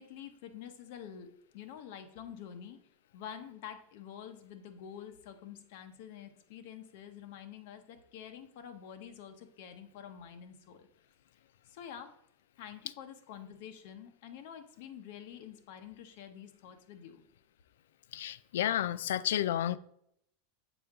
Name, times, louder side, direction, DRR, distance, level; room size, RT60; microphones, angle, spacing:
voice 1, 0.0-2.8 3.1-10.9 11.7-12.1 12.6-17.2, left 9 dB, 50° left, 0.8 m, -48 dB
voice 2, 18.1-19.8, left 11 dB, 85° left, 0.3 m, -31 dB
7.1 x 4.8 x 3.5 m
supercardioid pair, 175°, 0 cm